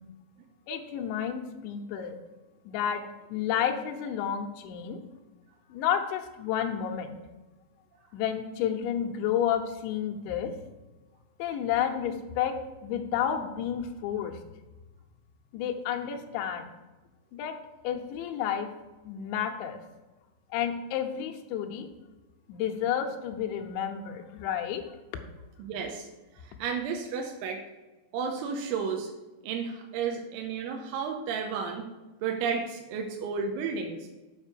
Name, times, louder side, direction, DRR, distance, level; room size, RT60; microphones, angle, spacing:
voice 1, 0.7-2.2 2.7-3.0 3.3-5.0 5.7-7.2 8.1-10.5 11.4-12.5 12.8-14.4 15.5-16.7 17.3-17.6 17.8-18.7 19.0-19.8 20.5-21.9 22.5-24.8, left 9 dB, 80° left, 4 dB, 3.0 m, -30 dB
voice 2, 25.6-26.1 26.4-27.6 28.1-29.1 29.4-31.9 32.2-34.1, right 6 dB, 90° right, 2 dB, 3.2 m, -32 dB
8.1 x 5.3 x 6.8 m, 1.1 s
omnidirectional pair, 5.5 m